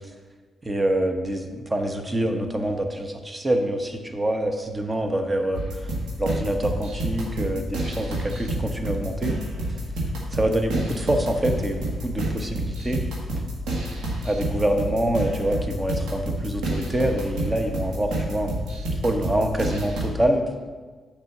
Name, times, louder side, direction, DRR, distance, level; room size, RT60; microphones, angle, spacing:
voice 1, 0.6-5.6 6.2-9.4 10.3-13.0 14.2-18.5 19.0-20.4, right 1 dB, 30° right, 5 dB, 1.1 m, -25 dB
sound 1, 5.5-20.1, right 1 dB, 75° right, 1.7 m, -29 dB
6.7 x 5.0 x 5.8 m, 1.4 s
hypercardioid pair, 45°, 0 cm